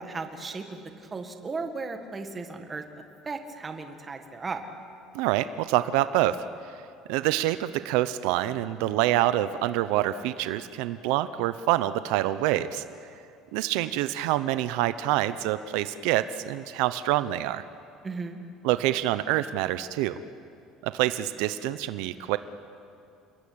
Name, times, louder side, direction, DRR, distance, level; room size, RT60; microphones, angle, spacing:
voice 1, 0.0-2.8 3.3-4.7 18.0-18.4, right 4 dB, 15° right, 5 dB, 1.8 m, -36 dB
voice 2, 5.1-6.5 7.1-12.8 13.5-17.6 18.6-20.2 20.8-22.4, right 14 dB, 75° right, 12 dB, 0.8 m, -26 dB
29.5 x 20.5 x 8.7 m, 2.6 s
cardioid pair, 170°, 0 cm